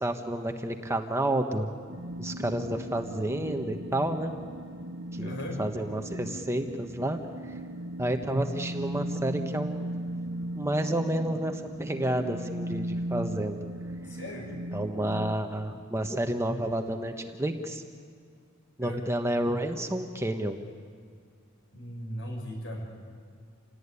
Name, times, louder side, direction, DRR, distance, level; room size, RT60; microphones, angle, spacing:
voice 1, 0.0-1.8 2.2-4.3 5.1-7.5 8.0-9.9 10.6-13.6 14.7-17.8 18.8-20.6, right 1 dB, 15° right, 5 dB, 1.2 m, -30 dB
sound 1, 1.9-15.3, right 1 dB, 75° right, 1.7 m, -37 dB
voice 2, 5.2-5.6 14.1-14.5 18.8-19.0 21.7-23.0, equal, 60° left, 2 dB, 6.5 m, -38 dB
28.5 x 18.0 x 9.8 m, 2.1 s
head